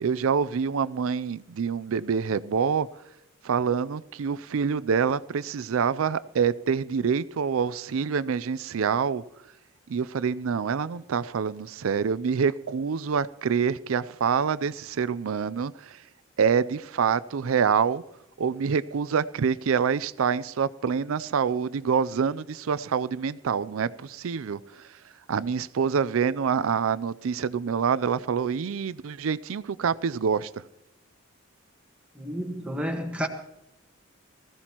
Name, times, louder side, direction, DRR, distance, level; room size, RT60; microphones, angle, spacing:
voice 1, 0.0-2.9 3.4-9.2 9.9-16.0 16.4-18.0 18.4-24.9 25.3-30.5, right 6 dB, 75° right, 0.4 m, -26 dB
voice 2, 32.1-33.3, equal, 5° right, 1.4 m, -30 dB
20.0 x 15.0 x 3.0 m
head